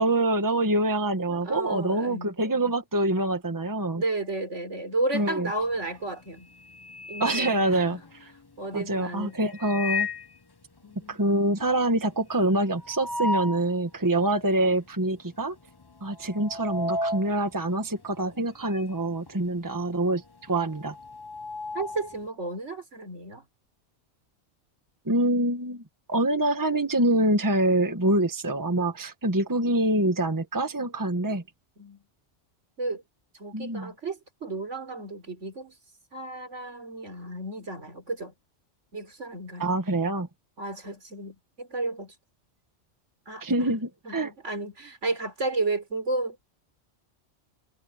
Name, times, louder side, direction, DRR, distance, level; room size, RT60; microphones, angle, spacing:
voice 1, 0.0-4.0 5.1-5.5 7.2-8.0 8.7-10.1 11.1-15.5 16.0-20.9 25.0-25.8 26.1-31.4 33.5-33.9 39.6-40.3 43.4-44.3, right 1 dB, 15° right, 1.5 m, -25 dB
voice 2, 1.3-2.3 3.9-6.5 7.1-8.0 8.6-9.5 10.8-11.2 21.7-23.4 31.8-32.0 32.8-33.0 33.3-35.7 36.1-38.3 38.9-39.7 40.6-42.1 43.3-43.7 44.0-46.4, right 2 dB, 75° right, 4.2 m, -33 dB
sound 1, 5.6-6.0 6.4-8.5 9.4-10.4 10.8-10.9 11.1-11.2 11.6-13.7 14.2-14.3 15.1-15.4 15.7-19.0 19.3-22.2, left 2 dB, 25° left, 0.7 m, -34 dB
omnidirectional pair, 1.2 m